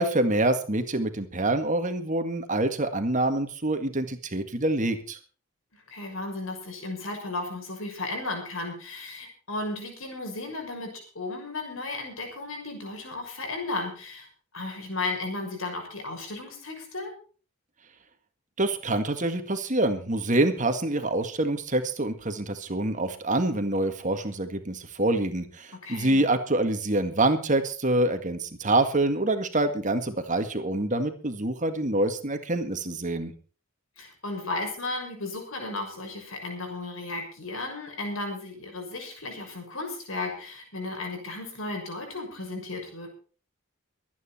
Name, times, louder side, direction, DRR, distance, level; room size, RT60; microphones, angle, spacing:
voice 1, 0.0-5.2 18.6-33.3, right 2 dB, 35° right, 8 dB, 1.9 m, -26 dB
voice 2, 5.7-14.3 14.5-17.1 25.8-26.2 34.0-43.1, left 2 dB, 75° left, 3 dB, 6.4 m, -34 dB
23.5 x 9.6 x 4.4 m, 0.39 s
head